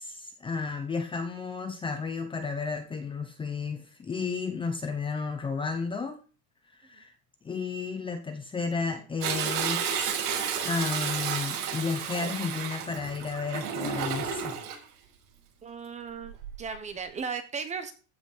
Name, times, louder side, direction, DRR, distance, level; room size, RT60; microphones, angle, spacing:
voice 1, 0.0-6.2 6.8-7.1 7.4-10.1 10.6-14.5, left 4 dB, 10° left, 6 dB, 0.8 m, -32 dB
Toilet flush, 9.2-14.8 16.2-16.7 17.2-17.3, right 7 dB, 75° right, 6.3 m, -32 dB
voice 2, 15.6-17.9, right 5 dB, 15° right, 9 dB, 0.9 m, -37 dB
14.5 x 6.0 x 6.6 m, 0.37 s
cardioid pair, 175°, 48 cm